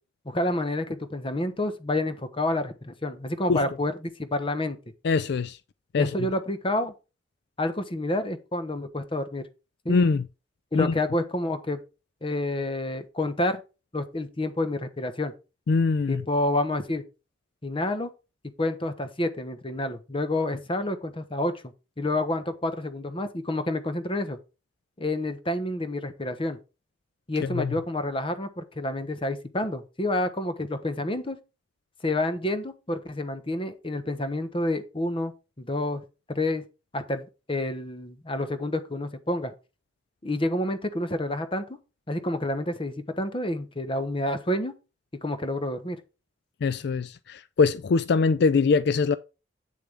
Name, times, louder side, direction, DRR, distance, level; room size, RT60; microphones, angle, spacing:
voice 1, 0.2-4.8 5.9-6.9 7.6-9.4 9.8-10.0 10.7-11.8 12.2-13.6 13.9-15.3 16.1-17.0 17.6-18.1 18.6-21.6 22.0-24.4 25.0-26.6 27.3-31.4 32.0-35.3 35.6-36.0 36.3-36.6 36.9-39.5 40.2-41.8 42.1-44.7 45.2-46.0, left 1 dB, 30° left, 1.1 m, -29 dB
voice 2, 5.0-5.6 5.9-6.1 9.9-10.2 10.7-10.9 15.7-16.2 27.5-27.7 46.6-49.2, left 4 dB, 65° left, 0.4 m, -23 dB
8.5 x 6.8 x 3.5 m
head